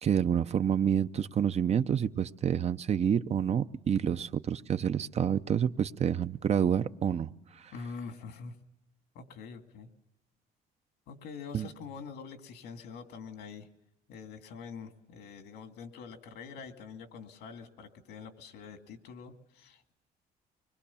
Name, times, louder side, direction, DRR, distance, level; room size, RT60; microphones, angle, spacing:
voice 1, 0.0-7.7 11.5-11.7, right 8 dB, 40° right, 0.7 m, -28 dB
voice 2, 7.7-8.6 9.1-9.9 11.1-13.7 14.1-19.9, left 5 dB, 80° left, 2.2 m, -45 dB
24.5 x 21.5 x 7.0 m
cardioid pair, 110°, 17 cm